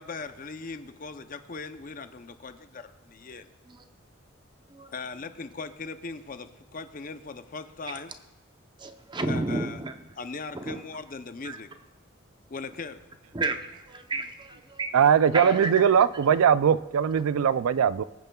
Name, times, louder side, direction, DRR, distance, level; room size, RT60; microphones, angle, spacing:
voice 1, 0.0-3.5 4.9-8.1 9.3-9.8 10.2-11.7 12.5-13.0, left 4 dB, 40° left, 0.6 m, -39 dB
voice 2, 8.8-10.0 10.5-11.0 11.4-11.6 13.3-15.0 15.3-15.8, right 2 dB, 20° right, 0.7 m, -32 dB
voice 3, 14.9-18.0, right 8 dB, 90° right, 0.4 m, -21 dB
22.5 x 9.2 x 2.3 m
head